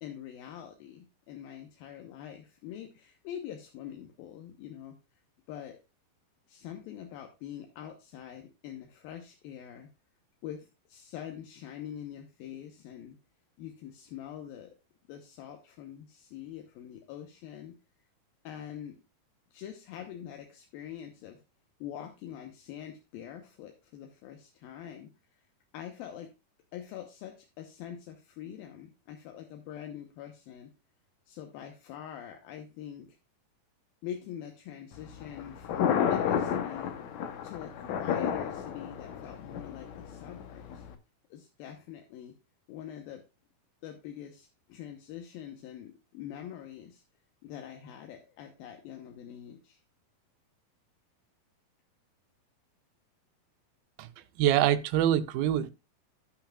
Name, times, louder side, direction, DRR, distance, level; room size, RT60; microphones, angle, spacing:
voice 1, 0.0-5.0 5.5-5.8 6.5-9.9 10.4-13.2 13.6-14.7 15.1-17.8 18.4-19.0 19.5-21.4 21.8-25.5 25.7-26.3 26.7-30.7 31.3-33.2 34.0-37.0 37.4-40.8 41.3-42.3 42.7-43.2 43.8-47.0 47.4-49.8, left 10 dB, 85° left, 2.8 m, -44 dB
Thunder, 34.9-40.9, left 8 dB, 65° left, 1.9 m, -32 dB
voice 2, 54.4-55.7, right 11 dB, 90° right, 2.5 m, -25 dB
16.0 x 5.8 x 2.4 m
omnidirectional pair, 4.1 m